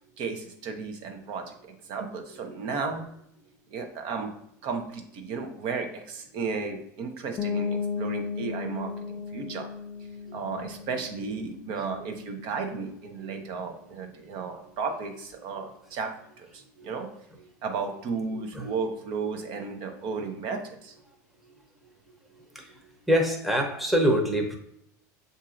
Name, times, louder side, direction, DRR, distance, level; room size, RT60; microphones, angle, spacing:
voice 1, 0.2-3.0 3.7-4.3 4.6-9.7 10.3-17.1 17.4-20.9 22.3-22.4 22.8-22.9, right 4 dB, 55° right, 5 dB, 0.8 m, -34 dB
sound 1, 7.4-13.0, left 5 dB, 35° left, 0.4 m, -35 dB
voice 2, 23.1-24.6, equal, ahead, 1 dB, 0.9 m, -24 dB
7.4 x 2.7 x 2.5 m, 0.74 s
hypercardioid pair, 100°, 9 cm